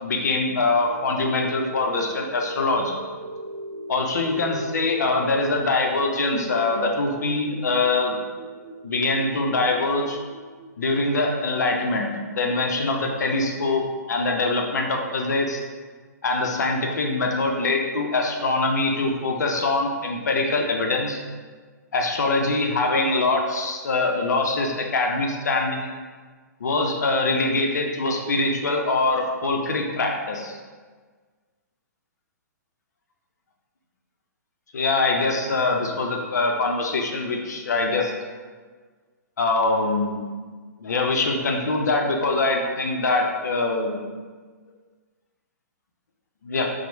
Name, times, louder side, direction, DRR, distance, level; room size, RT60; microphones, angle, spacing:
voice 1, 0.0-3.0 3.9-8.2 8.8-10.2 10.8-15.6 16.2-21.2 21.9-25.9 26.6-30.6 34.7-38.1 39.4-40.3 40.8-44.0 46.4-46.7, left 3 dB, 70° left, 1 dB, 0.5 m, -23 dB
sound 1, 0.7-10.7, right 1 dB, 35° right, 0.8 m, -39 dB
3.0 x 2.0 x 3.0 m, 1.5 s
figure-of-eight pair, 120°, 10 cm